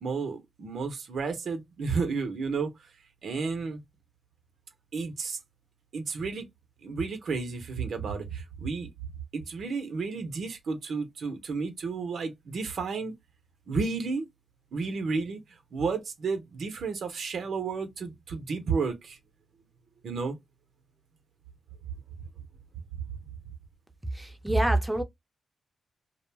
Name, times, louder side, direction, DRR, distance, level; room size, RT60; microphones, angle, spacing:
voice 1, 0.0-2.7 3.2-3.8 4.9-5.4 5.9-6.5 6.8-8.9 9.3-13.1 13.7-14.3 14.7-15.4 15.7-19.2 20.0-20.4, right 4 dB, 75° right, 0.7 m, -32 dB
voice 2, 24.1-25.0, right 1 dB, 10° right, 0.6 m, -26 dB
2.4 x 2.1 x 3.2 m
cardioid pair, 65°, 0 cm